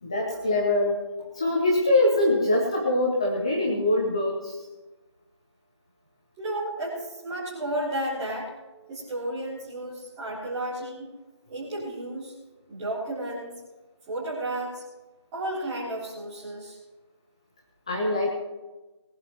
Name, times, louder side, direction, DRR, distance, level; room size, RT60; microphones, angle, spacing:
voice 1, 0.0-1.0 1.3-4.6 17.9-18.3, left 1 dB, 10° left, -1 dB, 0.9 m, -23 dB
voice 2, 6.4-8.5 8.9-11.1 11.5-12.3 12.7-13.6 14.1-14.8 15.3-16.8, right 1 dB, 5° right, -10 dB, 3.5 m, -32 dB
21.5 x 13.0 x 3.1 m, 1.2 s
figure-of-eight pair, 170°, 15 cm